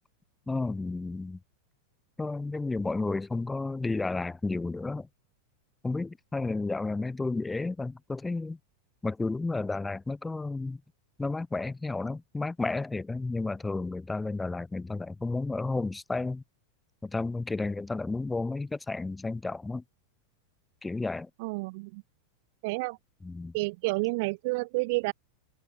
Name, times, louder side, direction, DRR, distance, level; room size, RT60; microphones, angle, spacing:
voice 1, 0.5-1.4 2.2-5.1 5.8-8.6 9.0-10.8 11.2-16.4 17.0-19.8 20.8-21.3 23.2-23.5, left 3 dB, 10° left, 1.8 m, -32 dB
voice 2, 21.4-22.0 22.6-23.0 23.5-25.1, right 26 dB, 50° right, 0.7 m, -30 dB
figure-of-eight pair, 90°, 0 cm